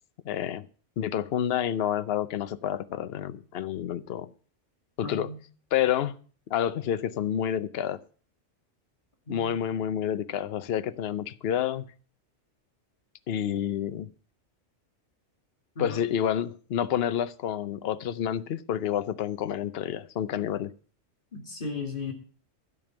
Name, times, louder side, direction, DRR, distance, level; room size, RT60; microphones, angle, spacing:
voice 1, 0.2-0.7 1.0-4.3 5.0-5.3 5.7-6.2 6.5-8.0 9.3-11.9 13.3-14.1 15.8-20.7, left 10 dB, 60° left, 0.9 m, -29 dB
voice 2, 5.0-5.4 9.3-9.6 15.8-16.0 21.3-22.1, left 3 dB, 45° left, 2.5 m, -36 dB
12.5 x 5.2 x 8.8 m
omnidirectional pair, 1.2 m